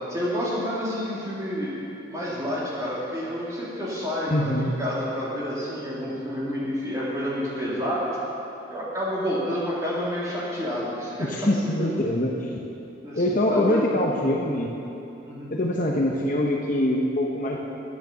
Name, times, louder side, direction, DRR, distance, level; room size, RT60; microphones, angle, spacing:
voice 1, 0.1-1.7 2.1-8.2 8.7-11.4 11.8-11.9 13.0-13.2 13.5-13.8 15.2-15.5, equal, 15° right, -8 dB, 2.8 m, -29 dB
voice 2, 4.3-4.8 11.2-12.5 13.1-14.7 15.5-17.6, left 1 dB, 40° left, -1 dB, 0.9 m, -24 dB
10.5 x 9.2 x 6.8 m, 2.9 s
head